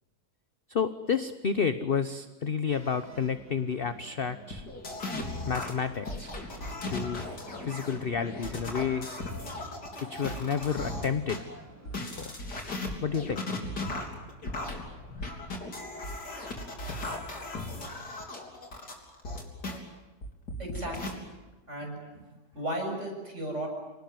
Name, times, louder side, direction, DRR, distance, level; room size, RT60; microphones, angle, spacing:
voice 1, 0.7-4.7 5.5-6.3 6.9-7.2 7.6-9.2 10.0-11.4 12.0-12.3 13.0-13.4, left 6 dB, 40° left, 11 dB, 1.0 m, -30 dB
sound 1, 2.7-12.3, right 2 dB, 10° right, 4.7 m, -52 dB
sound 2, 4.5-11.4 11.9-19.8 20.2-21.1, left 2 dB, 75° left, 4.4 m, -37 dB
voice 2, 20.6-21.2 21.7-22.3 22.5-23.7, right 1 dB, 45° right, 1 dB, 7.2 m, -35 dB
28.0 x 19.0 x 9.4 m, 1.2 s
omnidirectional pair, 1.8 m